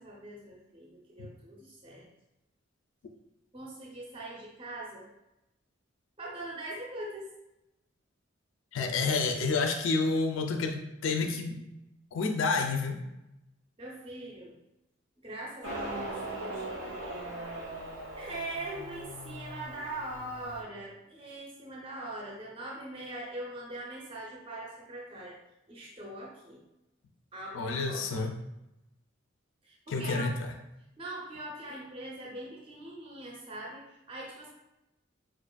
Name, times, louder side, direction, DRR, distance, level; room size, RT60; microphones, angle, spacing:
voice 1, 0.0-2.1 3.5-5.1 6.2-7.3 13.8-14.6 15.2-17.2 18.1-25.4 25.7-26.6 27.3-28.3 29.6-30.4 31.0-34.5, right 1 dB, 30° right, -4 dB, 0.6 m, -42 dB
voice 2, 8.7-11.6 12.1-13.0 27.5-28.3 29.9-30.3, left 4 dB, 80° left, 4 dB, 0.4 m, -29 dB
Motorcycle, 15.6-20.6, right 1 dB, 75° right, 1.0 m, -40 dB
4.6 x 2.4 x 2.2 m, 0.92 s
head